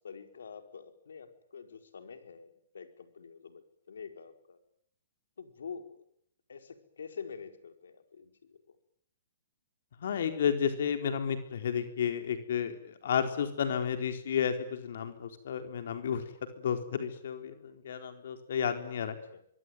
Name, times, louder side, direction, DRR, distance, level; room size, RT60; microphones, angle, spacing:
voice 1, 0.0-4.6 5.4-5.9 6.5-8.8 19.3-19.4, left 6 dB, 90° left, 8 dB, 4.9 m, -46 dB
voice 2, 10.0-16.2 16.6-19.2, left 7 dB, 65° left, 8 dB, 4.1 m, -32 dB
24.5 x 24.0 x 9.3 m, 0.70 s
hypercardioid pair, 155°, 0 cm